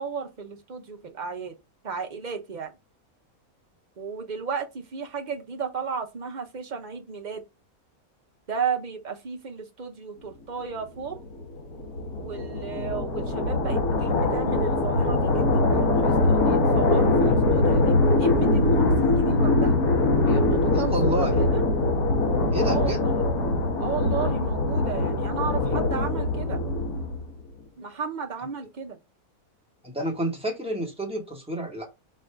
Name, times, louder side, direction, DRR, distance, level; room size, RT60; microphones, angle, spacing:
voice 1, 0.0-1.5 1.8-2.7 4.0-7.4 8.5-11.3 12.2-19.7 20.3-21.6 22.6-23.2 23.8-26.6 27.8-29.0, right 6 dB, 40° right, 0.7 m, -34 dB
digging a blackhole, 11.1-27.4, left 2 dB, 75° left, 1.7 m, -22 dB
voice 2, 20.8-21.5 22.5-23.0 29.8-31.8, right 1 dB, 5° right, 1.1 m, -29 dB
5.4 x 2.6 x 3.3 m
omnidirectional pair, 1.6 m